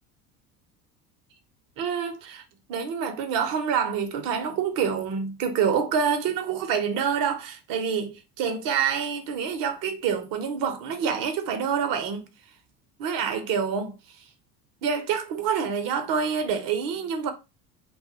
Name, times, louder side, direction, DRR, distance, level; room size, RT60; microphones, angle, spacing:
voice 1, 1.8-2.4 2.7-12.3 13.0-13.9 14.8-17.3, right 7 dB, 45° right, 0.8 m, -27 dB
2.5 x 2.3 x 2.7 m
hypercardioid pair, 70°, 47 cm